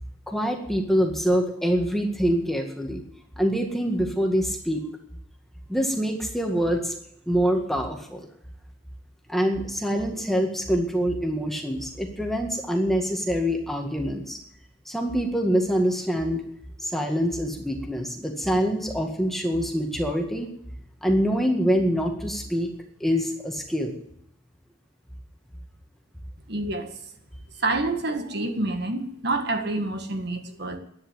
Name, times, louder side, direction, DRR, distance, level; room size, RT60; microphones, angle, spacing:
voice 1, 0.3-3.0 3.4-4.8 5.7-6.9 7.3-8.3 9.3-14.4 14.9-16.4 16.8-20.5 21.0-22.7 23.0-23.9, equal, ahead, 2 dB, 1.9 m, -25 dB
voice 2, 26.5-26.9 27.6-30.8, right 2 dB, 60° right, 6 dB, 1.7 m, -27 dB
11.5 x 9.7 x 9.7 m, 0.72 s
head